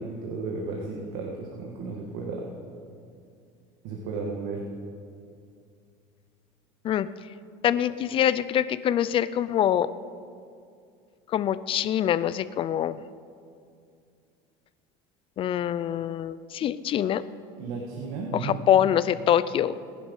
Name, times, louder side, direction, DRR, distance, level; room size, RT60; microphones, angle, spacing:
voice 1, 0.0-2.4 3.8-4.6 17.6-18.6, right 4 dB, 75° right, -1 dB, 2.1 m, -34 dB
voice 2, 7.6-9.9 11.3-13.0 15.4-17.2 18.3-19.7, left 10 dB, 40° left, 16 dB, 0.5 m, -24 dB
19.5 x 10.5 x 5.6 m, 2.4 s
supercardioid pair, 125°, 14 cm